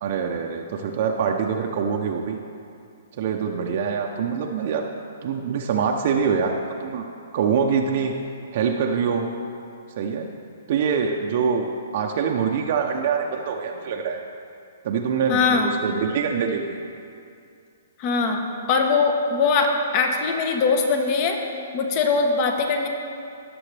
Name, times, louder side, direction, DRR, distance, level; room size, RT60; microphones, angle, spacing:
voice 1, 0.0-2.4 3.2-4.8 5.2-6.5 6.8-7.0 7.3-8.1 8.5-9.3 10.0-10.3 10.7-14.2 14.8-16.8, right 6 dB, 50° right, 2 dB, 0.7 m, -24 dB
voice 2, 15.3-15.7 18.0-21.4 21.7-22.9, left 4 dB, 35° left, 4 dB, 1.1 m, -21 dB
17.0 x 7.0 x 3.4 m, 2.4 s
hypercardioid pair, 155°, 0 cm